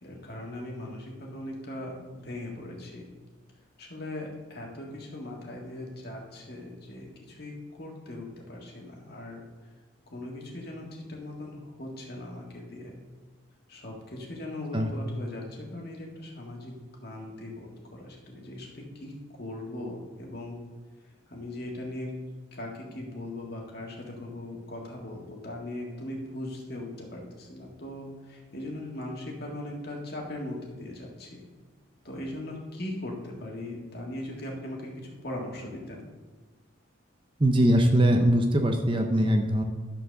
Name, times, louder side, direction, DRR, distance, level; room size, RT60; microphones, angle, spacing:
voice 1, 0.0-3.1 3.8-9.4 10.1-13.0 13.7-16.7 17.0-20.6 21.3-22.1 22.5-31.4 32.0-36.1, left 1 dB, 50° left, -1 dB, 1.8 m, -39 dB
voice 2, 37.4-39.6, right 1 dB, 25° right, 4 dB, 0.6 m, -22 dB
11.5 x 4.5 x 6.5 m, 1.3 s
head